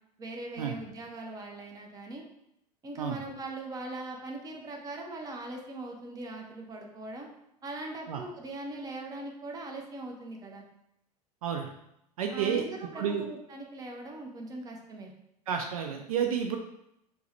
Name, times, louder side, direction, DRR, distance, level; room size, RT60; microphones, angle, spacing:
voice 1, 0.2-2.2 2.8-7.3 7.6-10.6 12.3-15.1, right 2 dB, 15° right, 2 dB, 0.6 m, -40 dB
voice 2, 12.2-12.6 13.0-13.2 15.5-16.6, right 8 dB, 60° right, 4 dB, 0.4 m, -30 dB
4.4 x 2.1 x 2.8 m, 0.80 s
figure-of-eight pair, 85°, 21 cm